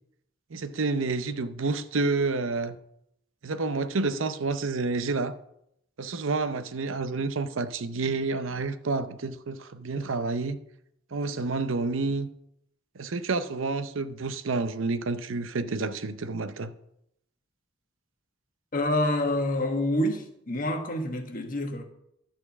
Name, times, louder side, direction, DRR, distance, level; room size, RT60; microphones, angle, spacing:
voice 1, 0.5-2.8 3.4-5.3 6.0-10.6 11.1-12.3 12.9-16.7, right 3 dB, 90° right, 0.7 m, -29 dB
voice 2, 18.7-21.8, left 1 dB, 45° left, 1.4 m, -27 dB
12.0 x 4.4 x 7.1 m
head